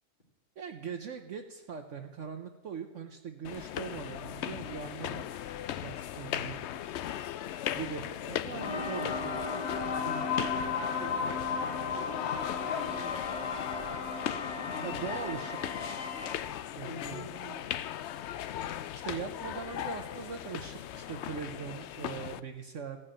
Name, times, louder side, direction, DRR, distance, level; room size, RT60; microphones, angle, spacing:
voice 1, 0.6-5.2 5.8-6.6 7.7-9.3 14.8-15.6 16.8-17.3 19.0-23.0, right 6 dB, 60° right, 6 dB, 1.1 m, -41 dB
sound 1, 3.4-22.4, left 11 dB, 70° left, 0.6 m, -38 dB
sound 2, 8.6-16.4, left 5 dB, 85° left, 1.6 m, -35 dB
voice 2, 10.0-13.9 14.6-15.0 16.9-17.7, left 1 dB, 30° left, -2 dB, 2.8 m, -48 dB
15.5 x 5.5 x 8.8 m, 1.2 s
omnidirectional pair, 1.6 m